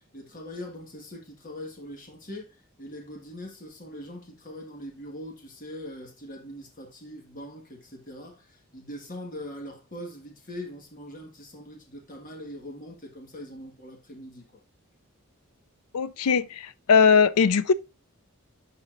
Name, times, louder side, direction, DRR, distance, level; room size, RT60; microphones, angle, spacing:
voice 1, 0.0-14.6, left 1 dB, 35° left, 1.7 m, -42 dB
voice 2, 15.9-16.5 16.9-17.7, left 6 dB, 85° left, 0.5 m, -19 dB
11.0 x 4.2 x 2.6 m
head